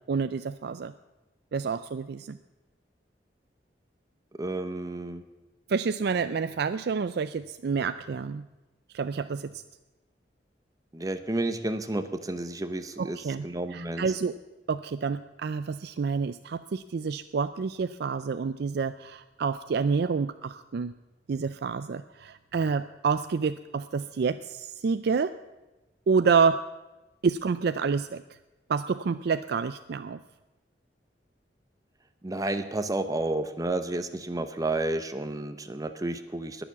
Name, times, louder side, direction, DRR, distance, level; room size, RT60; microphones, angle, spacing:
voice 1, 0.1-0.9 1.5-2.4 5.7-8.4 8.9-9.6 13.0-14.3 14.7-20.9 21.3-25.3 26.1-26.6 27.2-28.2 28.7-30.2, right 5 dB, 65° right, 11 dB, 0.4 m, -28 dB
voice 2, 4.4-5.2 10.9-13.2 13.4-14.1 32.2-36.6, right 2 dB, 20° right, 9 dB, 0.8 m, -31 dB
20.5 x 7.1 x 7.2 m, 1.1 s
head